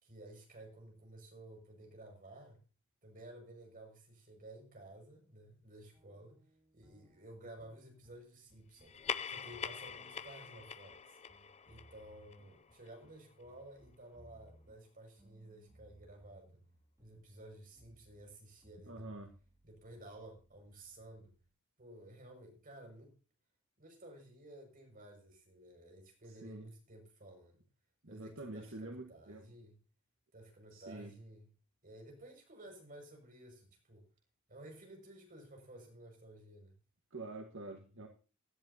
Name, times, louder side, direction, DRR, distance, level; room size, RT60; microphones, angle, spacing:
voice 1, 0.0-2.6 3.0-6.4 6.7-9.0 9.3-11.2 11.7-16.6 17.0-19.1 19.6-21.3 21.8-23.1 23.8-27.6 28.1-29.8 30.3-31.5 31.8-34.1 34.5-36.7, right 1 dB, 40° right, 3 dB, 6.1 m, -54 dB
sound 1, 5.9-21.5, right 1 dB, 15° right, 2.9 m, -66 dB
sound 2, 8.8-13.7, left 7 dB, 30° left, 0.6 m, -44 dB
voice 2, 18.9-19.3 26.2-26.7 28.0-29.5 30.7-31.1 37.1-38.1, right 2 dB, 60° right, 3 dB, 1.7 m, -47 dB
17.0 x 11.5 x 2.8 m, 0.36 s
head